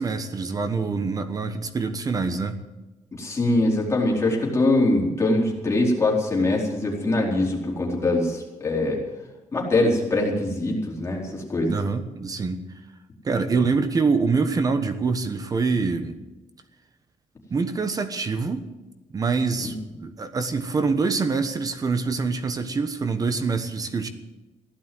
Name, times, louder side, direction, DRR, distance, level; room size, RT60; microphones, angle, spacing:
voice 1, 0.0-2.6 11.7-12.6 13.2-16.2 17.5-18.7 19.1-24.1, right 4 dB, 30° right, 9 dB, 1.1 m, -25 dB
voice 2, 3.2-9.0 9.5-11.7 19.6-19.7, left 2 dB, 20° left, -2 dB, 4.2 m, -23 dB
16.0 x 11.5 x 7.8 m, 1.1 s
wide cardioid pair, 165°, 12 cm